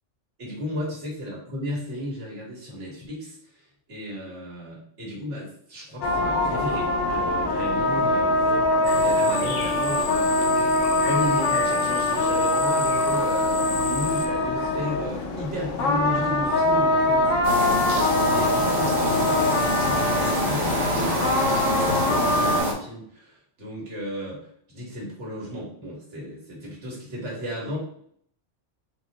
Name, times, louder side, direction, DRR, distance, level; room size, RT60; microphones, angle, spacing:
voice 1, 0.4-3.4 3.9-8.3 9.0-10.7 11.0-17.8 18.3-24.4 24.7-27.8, equal, 70° right, -3 dB, 1.6 m, -34 dB
sound 1, 6.0-22.6, left 2 dB, 85° left, 1.1 m, -23 dB
sound 2, 8.8-14.3, left 5 dB, 60° left, 0.7 m, -35 dB
sound 3, 17.4-22.7, equal, 40° right, 0.7 m, -25 dB
4.0 x 2.1 x 4.0 m, 0.64 s
omnidirectional pair, 1.3 m